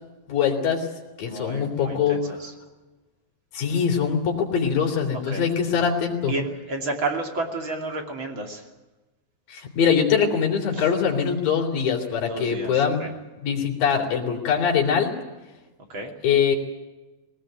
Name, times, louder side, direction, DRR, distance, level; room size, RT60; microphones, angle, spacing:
voice 1, 0.3-0.9 1.2-2.4 3.5-6.3 9.5-13.1 13.4-15.1 16.2-16.6, left 7 dB, 75° left, 0 dB, 5.2 m, -23 dB
voice 2, 1.2-2.5 5.3-5.4 6.3-8.6 10.7-10.8 12.3-13.1 15.9-16.1, right 2 dB, 35° right, 2 dB, 3.1 m, -31 dB
21.0 x 19.0 x 9.2 m, 1.1 s
omnidirectional pair, 4.1 m